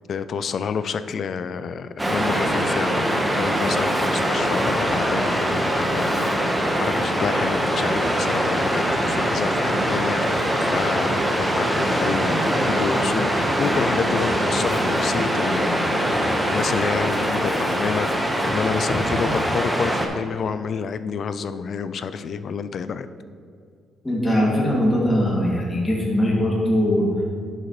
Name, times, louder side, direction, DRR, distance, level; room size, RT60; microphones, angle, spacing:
voice 1, 0.1-23.1, left 6 dB, 55° left, 13 dB, 0.4 m, -29 dB
Waves surf, 2.0-20.1, equal, 10° right, 1.1 m, -22 dB
voice 2, 24.0-27.0, equal, 15° left, -5 dB, 2.2 m, -21 dB
11.0 x 6.6 x 3.1 m, 2.3 s
cardioid pair, 90°, 0 cm